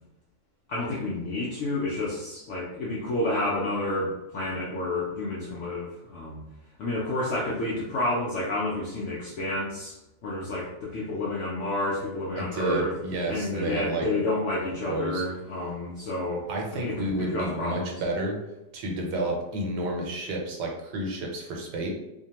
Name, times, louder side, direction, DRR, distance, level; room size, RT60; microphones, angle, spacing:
voice 1, 0.7-6.4 6.8-10.0 10.2-12.9 13.3-17.1 17.3-18.0, left 2 dB, 75° left, -6 dB, 0.6 m, -30 dB
voice 2, 12.4-14.1 14.9-15.2 16.5-18.4 18.7-21.9, right 1 dB, 90° right, 0 dB, 1.3 m, -30 dB
2.8 x 2.1 x 2.8 m, 0.96 s
omnidirectional pair, 1.8 m